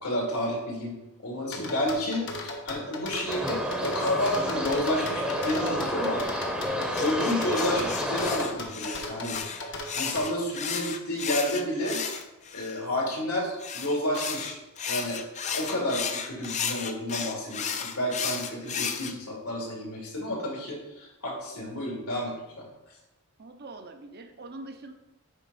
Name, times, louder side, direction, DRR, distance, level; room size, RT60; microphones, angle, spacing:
voice 1, 0.0-6.2 6.7-12.0 12.5-14.6 14.9-22.7, left 1 dB, 80° left, -2 dB, 2.5 m, -31 dB
sound 1, 1.5-10.3, left 2 dB, 55° left, 1.0 m, -37 dB
sound 2, 3.3-8.5, equal, 5° right, 0.8 m, -30 dB
sound 3, 6.9-12.8 13.6-19.1, left 7 dB, 30° left, 0.5 m, -33 dB
voice 2, 23.4-24.9, right 2 dB, 45° right, 6 dB, 0.7 m, -43 dB
8.2 x 3.6 x 5.5 m, 0.98 s
head